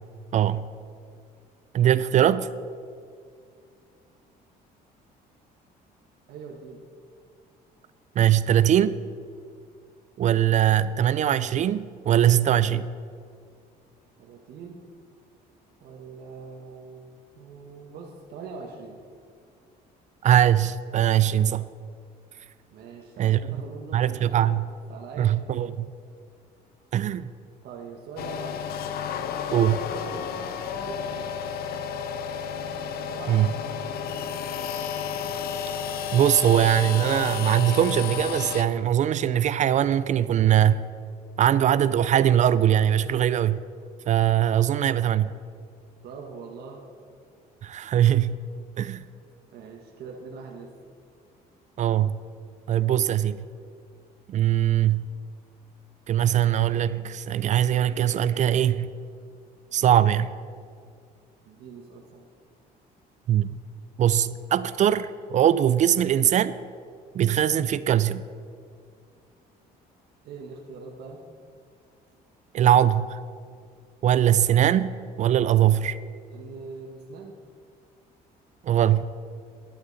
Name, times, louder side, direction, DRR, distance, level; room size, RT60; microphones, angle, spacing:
voice 1, 0.3-0.7 1.7-2.5 8.2-9.0 10.2-12.9 20.2-21.6 23.2-23.4 23.9-24.7 25.2-25.9 26.9-27.3 29.5-29.8 33.3-33.5 36.1-40.8 41.4-43.6 44.1-45.3 47.6-48.4 48.8-49.0 51.8-52.1 52.7-53.4 54.3-55.1 56.1-58.9 59.7-60.3 63.3-63.6 64.0-66.5 67.1-68.2 72.5-73.1 74.0-74.9 75.2-76.0 78.6-79.0, right 10 dB, 45° right, 15 dB, 0.4 m, -21 dB
voice 2, 6.3-6.8 14.2-14.8 15.8-19.0 22.7-24.5 24.9-25.4 27.6-28.6 29.6-30.3 30.6-31.5 33.1-33.5 33.8-34.3 34.6-35.0 46.0-46.8 49.5-50.7 61.4-62.3 70.2-71.2 76.3-77.4, right 4 dB, 75° right, 0 dB, 1.3 m, -42 dB
Honing Pocketknife, 28.2-38.6, left 7 dB, 65° left, 0.7 m, -32 dB
11.5 x 11.5 x 4.1 m, 2.2 s
cardioid pair, 110°, 17 cm